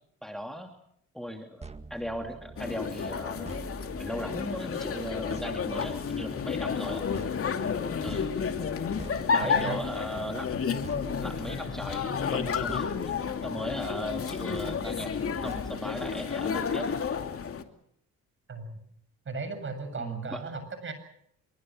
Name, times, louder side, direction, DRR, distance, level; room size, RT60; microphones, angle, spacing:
voice 1, 0.2-0.7 1.1-3.6 4.0-7.0 8.0-8.3 9.3-10.5 11.2-15.1 15.4-16.9 20.0-20.4, equal, ahead, 3 dB, 2.8 m, -37 dB
sound 1, 1.6-16.4, right 3 dB, 20° right, 2.0 m, -46 dB
sound 2, 2.6-17.6, left 6 dB, 50° left, 2.6 m, -31 dB
voice 2, 9.4-9.8 18.5-18.8 19.3-20.9, right 4 dB, 40° right, 9 dB, 7.7 m, -36 dB
25.5 x 24.0 x 6.4 m, 0.71 s
cardioid pair, 90°, 30 cm